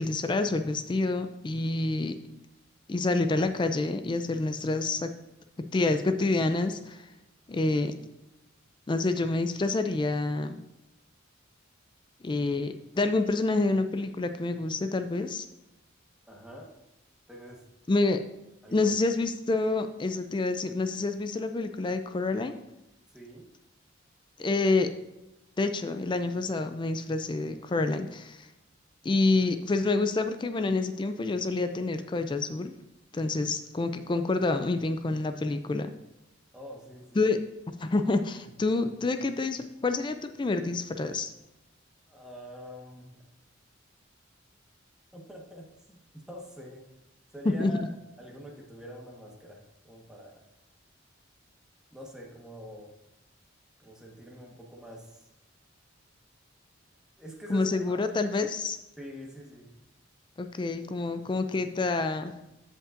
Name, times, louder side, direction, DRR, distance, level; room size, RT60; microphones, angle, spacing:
voice 1, 0.0-2.2 2.9-5.1 5.7-7.1 7.5-7.9 8.9-10.6 12.2-15.5 17.9-18.2 18.7-22.6 24.4-24.9 25.6-28.5 29.0-32.7 33.1-35.9 37.2-37.4 37.8-41.3 47.5-47.7 57.5-58.8 60.4-62.3, left 3 dB, 25° left, 9 dB, 0.3 m, -28 dB
voice 2, 16.3-16.7 17.3-17.6 18.6-18.9 23.1-23.5 36.5-37.3 42.1-43.2 45.1-46.0 46.3-46.8 47.3-47.8 48.2-49.6 49.8-50.4 51.9-52.9 53.8-55.3 57.2-58.0 59.0-59.7, equal, 5° right, -2 dB, 1.4 m, -45 dB
14.5 x 5.3 x 2.6 m, 0.94 s
head